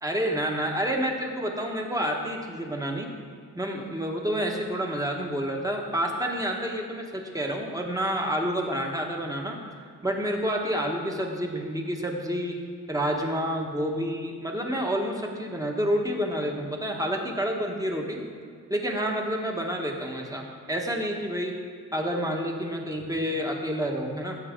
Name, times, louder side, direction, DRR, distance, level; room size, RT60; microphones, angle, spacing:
voice 1, 0.0-3.1 3.5-9.6 10.0-12.6 12.9-18.2 18.7-21.5 21.9-24.4, equal, 10° right, 1 dB, 1.3 m, -29 dB
16.5 x 8.1 x 3.7 m, 2.1 s
wide cardioid pair, 140°, 33 cm